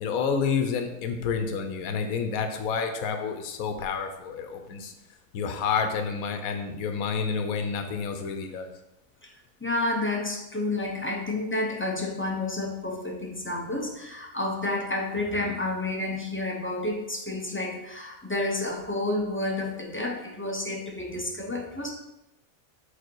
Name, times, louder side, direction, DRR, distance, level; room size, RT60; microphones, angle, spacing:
voice 1, 0.0-4.9 5.3-8.7, left 6 dB, 80° left, 6 dB, 1.2 m, -29 dB
voice 2, 9.6-21.9, left 2 dB, 15° left, 0 dB, 0.4 m, -30 dB
5.1 x 4.2 x 4.5 m, 0.92 s
omnidirectional pair, 1.5 m